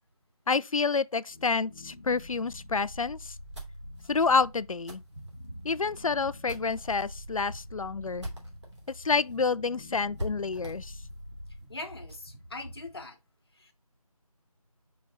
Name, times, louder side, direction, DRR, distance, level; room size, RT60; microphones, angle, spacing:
voice 1, 0.5-3.3 4.1-5.0 5.6-8.3 9.0-10.9, left 4 dB, 65° left, 0.4 m, -28 dB
sound 1, 1.3-11.6, left 1 dB, 15° left, 0.8 m, -47 dB
sound 2, 3.2-8.9 9.3-9.4 9.6-9.7 10.2-12.3, right 1 dB, 50° right, 2.8 m, -44 dB
sound 3, 4.9-13.0, equal, 75° right, 3.3 m, -49 dB
voice 2, 11.7-13.2 13.5-13.7, left 2 dB, 40° left, 1.0 m, -41 dB
5.0 x 4.9 x 4.8 m
figure-of-eight pair, 170°, 19 cm